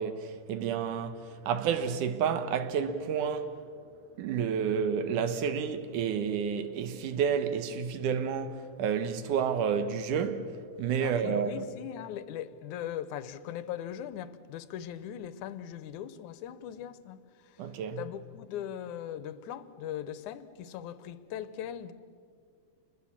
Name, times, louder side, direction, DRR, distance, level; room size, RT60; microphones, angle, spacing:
voice 1, 0.0-3.5 4.2-11.6 17.6-18.0, right 7 dB, 90° right, 2.7 m, -30 dB
voice 2, 11.0-17.7 18.0-21.9, left 10 dB, 80° left, 2.3 m, -40 dB
28.0 x 21.5 x 7.4 m
omnidirectional pair, 3.5 m